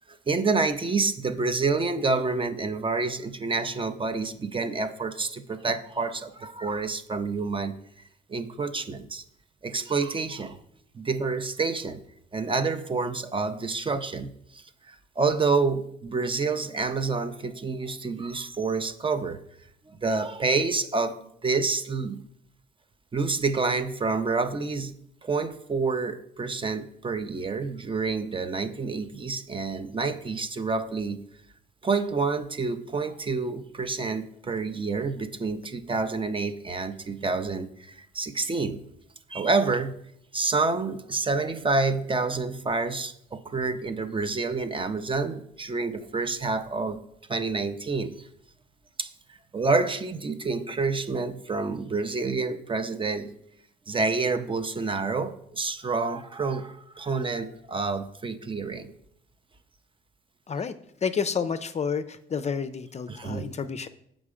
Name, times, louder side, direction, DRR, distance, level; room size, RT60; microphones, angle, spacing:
voice 1, 0.1-7.7 8.3-9.2 9.6-10.6 10.9-12.0 12.3-19.4 19.9-22.2 23.1-24.9 25.2-31.2 31.8-38.8 39.3-40.0 40.3-47.0 47.3-48.3 49.0-53.3 53.9-58.9 63.1-63.5, right 4 dB, 25° right, 10 dB, 0.6 m, -28 dB
voice 2, 61.0-63.9, left 6 dB, 35° left, 11 dB, 0.5 m, -30 dB
7.2 x 5.1 x 4.9 m, 0.72 s
cardioid pair, 90°, 20 cm